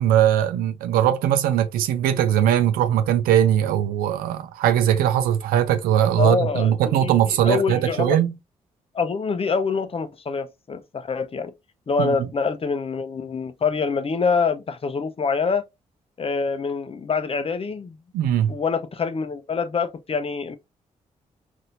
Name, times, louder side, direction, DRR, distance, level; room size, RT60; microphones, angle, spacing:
voice 1, 0.0-8.3 12.0-12.2 18.1-18.6, right 10 dB, 90° right, 0.5 m, -20 dB
voice 2, 6.2-8.2 8.9-11.5 11.9-15.6 16.2-18.0 18.5-20.6, left 5 dB, 40° left, 0.6 m, -25 dB
4.1 x 2.6 x 2.5 m
supercardioid pair, 50°, 15 cm